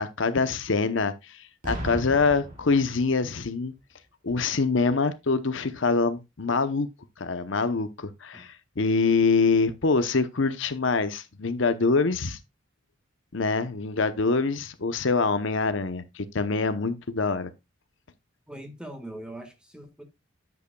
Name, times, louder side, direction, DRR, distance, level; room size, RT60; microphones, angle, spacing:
voice 1, 0.0-3.7 4.2-6.9 7.2-12.4 13.3-17.5, left 4 dB, 65° left, 0.8 m, -25 dB
Boom, 1.6-3.4 4.3-4.5, equal, 40° right, 3.4 m, -36 dB
voice 2, 18.5-20.0, right 1 dB, 5° right, 1.5 m, -41 dB
9.3 x 8.2 x 2.3 m
head